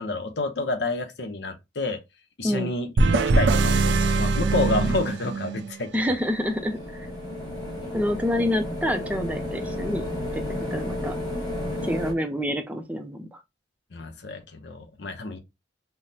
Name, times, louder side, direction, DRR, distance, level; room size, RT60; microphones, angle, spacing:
voice 1, 0.0-2.0 2.4-6.0 13.9-15.4, left 2 dB, 75° left, 0.8 m, -29 dB
sound 1, 3.0-5.8, right 3 dB, 85° right, 0.4 m, -22 dB
voice 2, 5.9-7.1 7.9-10.0 10.3-10.4 10.7-11.1 11.8-13.4, left 1 dB, 10° right, 0.4 m, -27 dB
sound 2, 6.0-12.1, left 1 dB, 25° left, 1.4 m, -32 dB
5.5 x 2.1 x 2.7 m
head